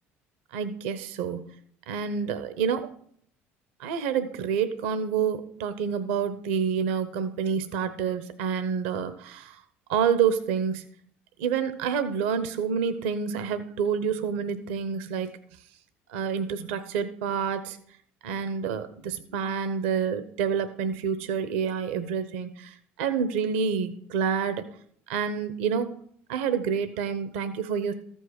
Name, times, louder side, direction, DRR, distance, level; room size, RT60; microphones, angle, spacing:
voice 1, 0.5-1.4 1.9-2.9 3.8-9.6 9.9-10.8 11.4-15.3 16.1-17.8 18.2-24.7 25.1-25.9 26.3-27.9, right 7 dB, 80° right, 11 dB, 0.8 m, -28 dB
13.5 x 5.5 x 6.5 m, 0.63 s
hypercardioid pair, 70°, 6 cm